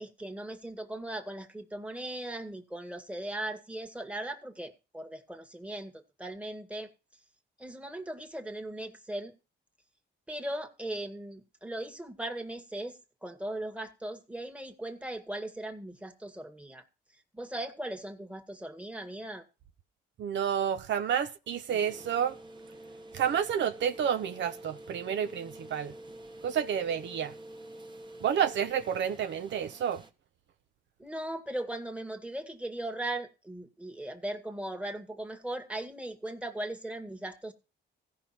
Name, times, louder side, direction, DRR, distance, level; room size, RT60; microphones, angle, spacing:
voice 1, 0.0-6.9 7.6-9.3 10.3-16.8 17.3-19.4 31.0-37.5, right 1 dB, 5° right, 1.8 m, -38 dB
voice 2, 20.2-22.4 23.1-25.9 26.4-27.3 28.2-30.0, right 8 dB, 65° right, 0.9 m, -30 dB
sound 1, 21.7-30.1, right 1 dB, 20° right, 1.4 m, -48 dB
16.0 x 5.6 x 4.3 m
cardioid pair, 90°, 20 cm